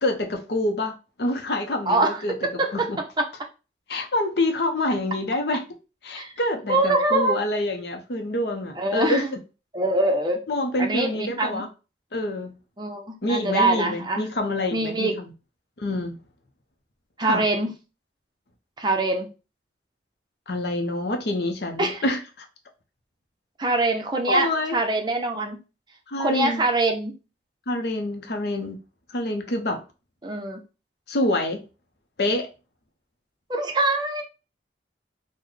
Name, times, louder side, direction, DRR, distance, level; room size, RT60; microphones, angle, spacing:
voice 1, 0.0-2.3 2.7-3.0 3.9-5.6 6.0-9.2 10.5-11.7 12.1-12.6 13.2-15.3 15.8-16.2 17.2-17.4 20.5-22.5 24.2-24.8 26.1-26.6 27.7-28.8 29.1-29.8 31.1-31.6 32.2-32.5, left 1 dB, 60° left, 0.6 m, -26 dB
voice 2, 1.9-2.9 3.2-3.3 6.2-6.3 6.7-7.4 8.8-9.3 9.7-10.4 10.8-11.6 12.8-14.2 14.7-15.2 17.2-17.7 18.8-19.3 21.8-22.0 23.6-25.6 26.2-27.1 30.2-30.6 33.5-34.2, right 2 dB, 25° right, 0.6 m, -24 dB
3.8 x 2.1 x 3.2 m
head